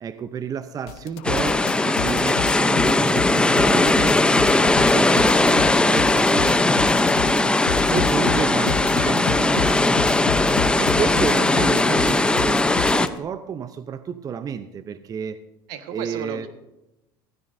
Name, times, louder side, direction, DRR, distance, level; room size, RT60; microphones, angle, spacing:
voice 1, 0.0-6.7 7.2-7.6 7.9-10.0 10.8-15.4 15.9-16.5, right 7 dB, 35° right, 12 dB, 0.7 m, -31 dB
sound 1, 0.9-13.2, left 9 dB, 70° left, 1.1 m, -30 dB
sound 2, 1.2-13.1, left 2 dB, 10° left, 0.7 m, -19 dB
sound 3, 2.1-9.6, right 3 dB, 50° right, 3.6 m, -47 dB
voice 2, 7.8-8.2 15.7-16.5, right 8 dB, 75° right, 8 dB, 1.5 m, -36 dB
16.0 x 15.5 x 2.7 m, 0.91 s
supercardioid pair, 95°, 11 cm